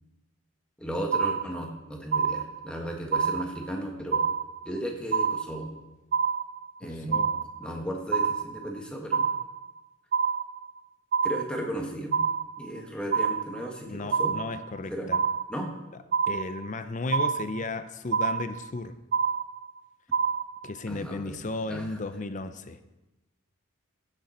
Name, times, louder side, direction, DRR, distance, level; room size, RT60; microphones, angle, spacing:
voice 1, 0.8-4.3 4.6-5.7 6.8-7.2 7.6-9.3 11.2-12.2 12.6-14.3 14.9-15.1 15.5-15.7 20.9-21.4 21.7-21.9, equal, 5° left, 0 dB, 1.4 m, -35 dB
sound 1, 1.1-1.8 2.1-2.8 3.1-3.8 4.1-4.8 5.1-5.8 6.1-6.8 7.1-7.8 8.1-8.8 9.1-9.8 10.1-10.8 11.1-11.8 12.1-12.8 13.1-13.8 14.1-14.8 15.1-15.8 16.1-16.8 17.1-17.8 18.1-18.8 19.1-19.8 20.1-20.8, right 6 dB, 45° right, 0.3 m, -27 dB
voice 2, 7.1-7.4 13.9-15.2 16.3-19.0 20.6-22.8, left 3 dB, 35° left, 10 dB, 0.5 m, -34 dB
15.5 x 6.7 x 4.3 m, 1.0 s
head